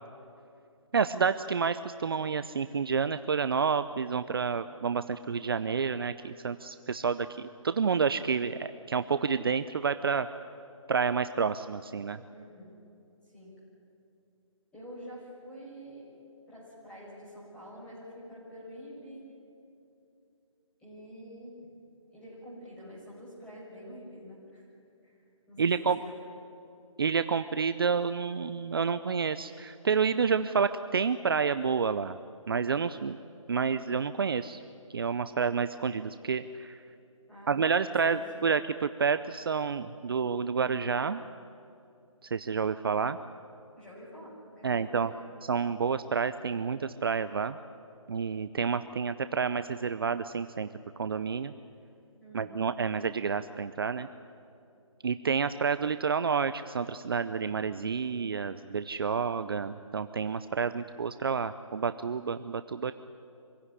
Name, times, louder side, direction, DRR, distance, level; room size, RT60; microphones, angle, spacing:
voice 1, 0.9-10.3 10.9-12.2 25.6-26.0 27.0-32.2 32.5-33.2 33.5-34.6 34.9-36.8 37.5-41.2 42.2-43.2 44.6-45.1 45.5-47.6 48.1-50.7 51.0-51.5 52.3-54.1 55.0-62.9, right 6 dB, 45° right, 12 dB, 0.6 m, -29 dB
voice 2, 12.3-12.7 13.3-13.5 14.7-16.0 16.5-19.2 20.8-21.6 22.1-24.6 25.0-25.2 25.5-26.1 37.3-38.2 43.7-45.3 52.2-52.5, equal, 5° left, -8 dB, 6.5 m, -47 dB
25.5 x 16.5 x 9.9 m, 2.6 s
figure-of-eight pair, 165°, 17 cm